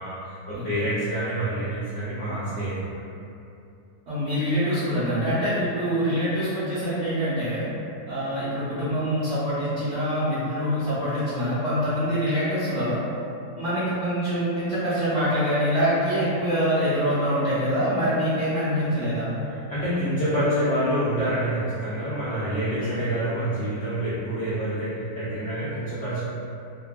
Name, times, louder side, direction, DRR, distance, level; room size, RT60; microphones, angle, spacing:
voice 1, 0.0-3.0 13.9-14.0 19.7-26.2, right 1 dB, 70° left, -12 dB, 0.7 m, -27 dB
voice 2, 4.1-7.7 8.1-13.0 13.6-19.3 22.8-23.0, equal, 55° right, -12 dB, 1.0 m, -25 dB
3.1 x 2.1 x 2.3 m, 2.6 s
omnidirectional pair, 1.8 m